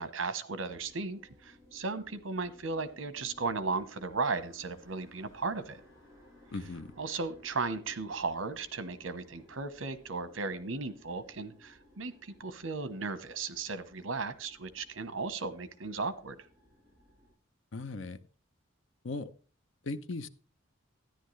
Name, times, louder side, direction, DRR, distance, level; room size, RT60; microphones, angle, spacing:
voice 1, 0.0-5.8 7.0-16.4, right 4 dB, 75° right, 1.1 m, -36 dB
sound 1, 0.7-17.3, left 1 dB, 15° right, 7.3 m, -60 dB
voice 2, 6.5-6.9 17.7-18.2 19.0-19.3 19.9-20.3, left 3 dB, 70° left, 0.8 m, -37 dB
13.5 x 10.5 x 3.2 m
head